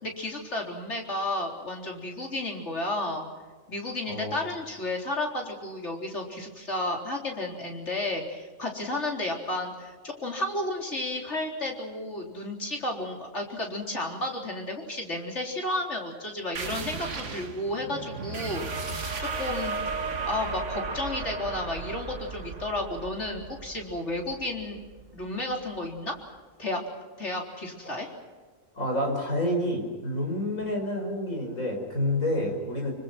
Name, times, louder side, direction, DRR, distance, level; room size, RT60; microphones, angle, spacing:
voice 1, 0.0-3.3 3.7-24.8 25.1-26.1 26.6-26.8 27.2-28.1, left 1 dB, 55° left, 1 dB, 4.3 m, -32 dB
sound 1, 16.6-25.8, right 4 dB, 60° right, 1.9 m, -35 dB
voice 2, 28.8-32.9, left 1 dB, 80° left, 2 dB, 5.8 m, -28 dB
26.5 x 24.5 x 6.1 m, 1.4 s
omnidirectional pair, 1.4 m